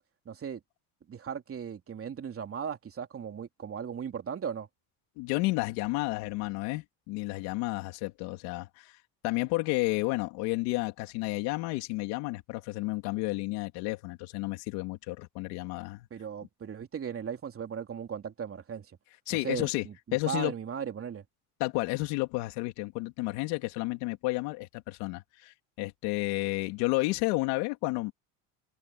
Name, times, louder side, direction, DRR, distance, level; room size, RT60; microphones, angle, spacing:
voice 1, 0.2-0.6 1.1-4.7 16.1-19.0 19.3-21.2, right 7 dB, 35° right, 3.1 m, -37 dB
voice 2, 5.2-9.0 9.2-16.1 19.3-19.9 20.1-20.5 21.6-28.1, left 22 dB, 85° left, 3.1 m, -31 dB
cardioid pair, 105°, 38 cm